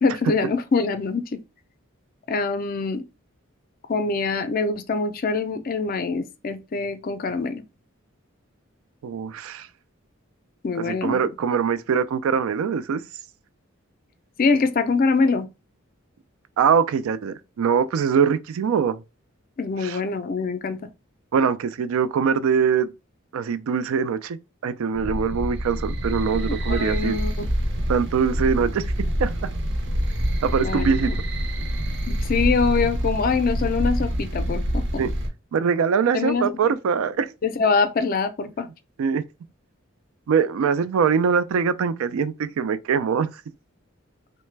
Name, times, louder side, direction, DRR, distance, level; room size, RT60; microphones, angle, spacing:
voice 1, 0.0-1.4 2.3-3.0 3.9-7.6 10.6-11.3 14.4-15.5 19.6-20.8 26.7-27.5 30.6-31.2 32.1-34.8 36.1-36.5 37.4-38.7, left 4 dB, 45° left, 0.4 m, -24 dB
voice 2, 9.0-9.7 10.8-13.0 16.6-19.0 19.8-20.0 21.3-22.9 23.3-24.4 24.6-27.2 27.9-28.9 29.2-29.3 30.4-31.1 35.0-35.1 35.5-37.3 39.0-39.2 40.3-43.3, right 6 dB, 85° right, 0.3 m, -22 dB
sound 1, 24.9-35.3, equal, 60° right, 0.7 m, -26 dB
3.2 x 2.1 x 3.2 m
head